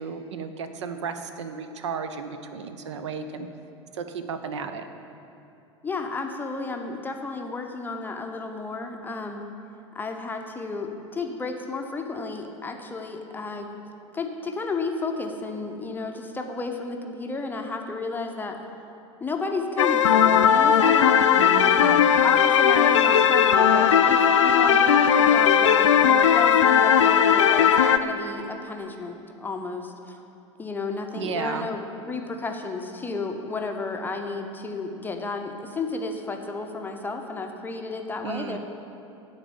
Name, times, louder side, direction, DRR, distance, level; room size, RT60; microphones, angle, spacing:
voice 1, 0.0-3.5 3.9-4.9 21.3-22.0 31.1-31.7 38.2-38.6, right 6 dB, 65° right, 9 dB, 0.5 m, -33 dB
voice 2, 5.8-9.4 9.9-13.7 14.1-18.6 19.2-21.2 21.6-30.2 30.6-38.6, left 3 dB, 10° left, 3 dB, 0.6 m, -32 dB
sound 1, 19.8-28.0, left 8 dB, 70° left, 0.4 m, -18 dB
9.9 x 4.0 x 6.9 m, 2.8 s
figure-of-eight pair, 80°, 16 cm